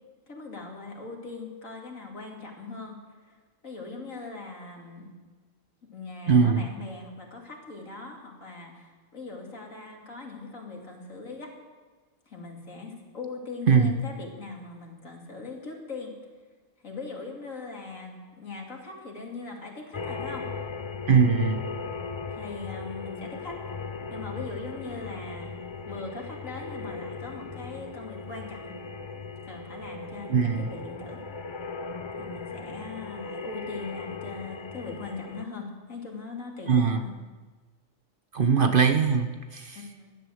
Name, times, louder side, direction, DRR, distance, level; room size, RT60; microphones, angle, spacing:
voice 1, 0.3-3.0 3.2-3.4 3.6-5.1 5.8-11.5 12.3-16.1 16.8-20.4 22.3-23.6 24.1-25.6 25.9-28.7 29.4-31.2 32.2-37.1 39.7-40.1, left 3 dB, 75° left, 0 dB, 3.2 m, -40 dB
voice 2, 6.3-6.7 13.7-13.9 21.1-21.6 30.3-30.7 36.7-37.0 38.3-39.8, right 6 dB, 45° right, 8 dB, 0.9 m, -21 dB
sound 1, 19.9-35.4, left 4 dB, 45° left, 0.3 m, -38 dB
16.0 x 11.5 x 7.8 m, 1.4 s
omnidirectional pair, 1.4 m